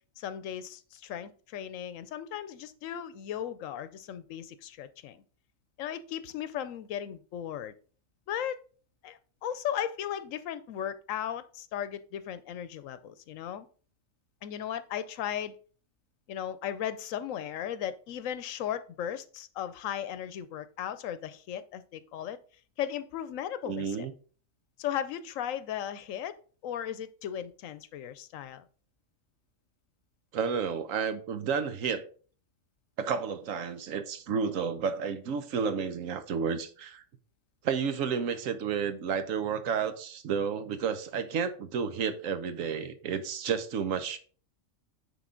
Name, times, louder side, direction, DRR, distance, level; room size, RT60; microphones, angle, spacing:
voice 1, 0.2-5.2 5.8-7.7 8.3-8.6 9.0-13.7 14.4-15.6 16.3-22.4 22.8-24.1 24.8-26.4 26.6-28.6, left 10 dB, 80° left, 1.0 m, -36 dB
voice 2, 23.6-24.1 30.3-32.0 33.0-37.0 37.6-44.2, right 6 dB, 85° right, 1.2 m, -31 dB
9.4 x 3.5 x 3.8 m
omnidirectional pair, 1.3 m